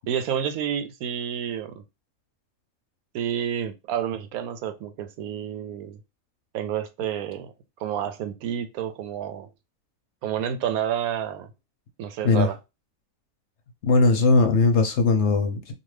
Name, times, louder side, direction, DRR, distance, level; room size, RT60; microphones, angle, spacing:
voice 1, 0.1-1.8 3.1-6.0 6.5-7.5 7.8-9.5 10.2-11.5 12.0-12.6, right 9 dB, 85° right, 1.1 m, -29 dB
voice 2, 13.8-15.7, left 3 dB, 60° left, 0.8 m, -19 dB
2.7 x 2.4 x 3.1 m
omnidirectional pair, 1.5 m